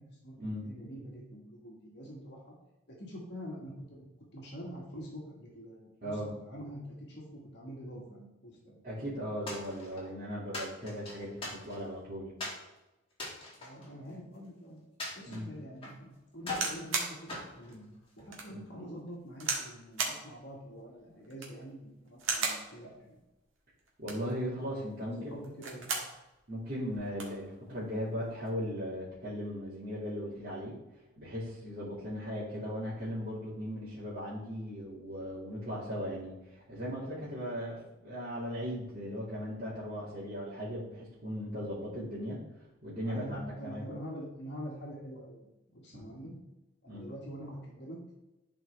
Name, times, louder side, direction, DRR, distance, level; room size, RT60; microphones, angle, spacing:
voice 1, 0.0-2.6 2.9-4.1 4.3-9.1 13.6-17.9 18.2-23.2 25.0-25.9 43.0-46.3 46.8-48.0, equal, 55° left, -3 dB, 1.8 m, -45 dB
voice 2, 8.8-12.3 15.3-15.5 24.0-25.3 26.5-30.7 31.2-42.4 42.8-43.9 45.9-46.0 46.9-47.1, equal, 45° right, -11 dB, 2.2 m, -38 dB
sound 1, 9.5-10.1 10.5-11.9 12.4-12.6 13.1-14.5 15.0-16.0 16.4-16.8 17.3-18.3, left 2 dB, 25° left, 2.3 m, -41 dB
sound 2, 16.5-17.2 17.7-17.8 18.3-18.5 19.4-19.7 20.0-20.2 21.2-21.6 22.2-22.7 23.9-24.3 25.4-26.1 26.5-26.6 26.9-27.4 28.2-28.5, right 4 dB, 70° right, 1.6 m, -34 dB
11.0 x 4.4 x 3.5 m, 0.99 s
head